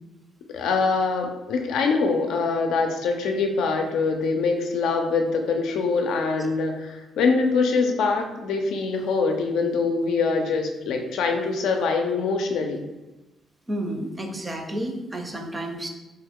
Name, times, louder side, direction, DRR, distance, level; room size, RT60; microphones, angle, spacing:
voice 1, 0.5-12.8, left 4 dB, 80° left, 3 dB, 0.4 m, -24 dB
voice 2, 13.7-15.9, right 1 dB, 20° right, 3 dB, 0.5 m, -31 dB
3.0 x 2.2 x 3.5 m, 1.1 s
cardioid pair, 90°, 0 cm